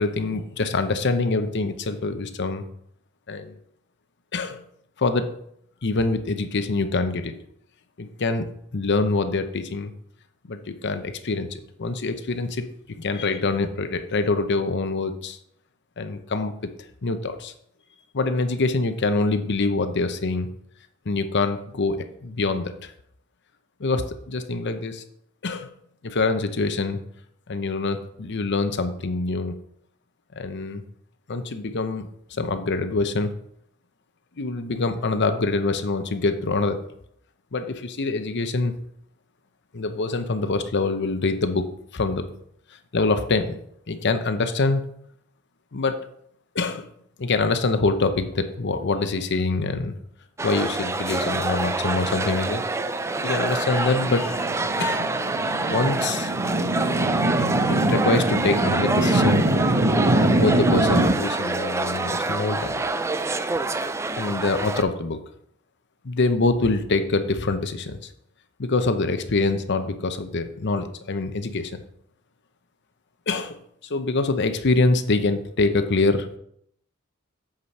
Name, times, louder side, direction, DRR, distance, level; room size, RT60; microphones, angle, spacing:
voice 1, 0.0-2.6 3.3-3.6 4.3-4.6 5.0-5.3 5.8-7.3 8.0-9.9 10.5-15.4 16.0-16.5 17.0-17.5 18.1-20.5 21.1-22.9 23.8-25.0 25.4-25.7 26.0-27.0 27.5-29.6 30.4-30.8 31.3-33.3 34.4-36.8 37.5-38.7 39.7-41.7 41.9-42.3 42.9-43.6 43.9-44.8 45.7-46.1 46.5-46.9 47.2-49.9 50.4-52.6 53.2-54.4 54.8-55.1 55.7-56.3 57.4-59.4 60.2-62.8 64.2-65.2 66.0-68.0 68.6-71.8 73.3-73.6 73.9-76.3, left 3 dB, 55° left, 9 dB, 0.8 m, -25 dB
sound 1, 50.4-64.8, right 3 dB, 15° right, 0.3 m, -26 dB
sound 2, 53.4-61.1, right 1 dB, 45° right, 0.8 m, -23 dB
8.1 x 5.0 x 5.5 m, 0.71 s
head